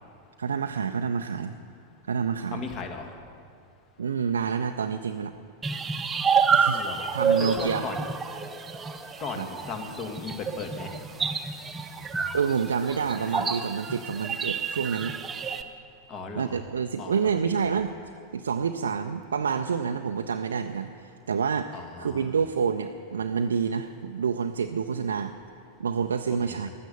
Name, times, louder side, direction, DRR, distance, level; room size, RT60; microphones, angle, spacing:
voice 1, 0.4-1.5 2.0-2.6 4.0-5.3 6.5-6.8 7.1-7.8 9.4-9.5 12.3-15.1 16.4-17.9 18.3-21.7 22.0-25.3 25.8-26.7, right 6 dB, 70° right, 6 dB, 0.5 m, -28 dB
voice 2, 2.5-3.1 6.7-8.0 9.2-11.0 16.1-16.6 17.0-17.6 21.7-22.3 26.3-26.7, left 4 dB, 35° left, 5 dB, 1.9 m, -37 dB
sound 1, 5.6-15.6, right 5 dB, 15° right, 0.9 m, -28 dB
15.0 x 11.5 x 6.9 m, 2.3 s
figure-of-eight pair, 90°, 0 cm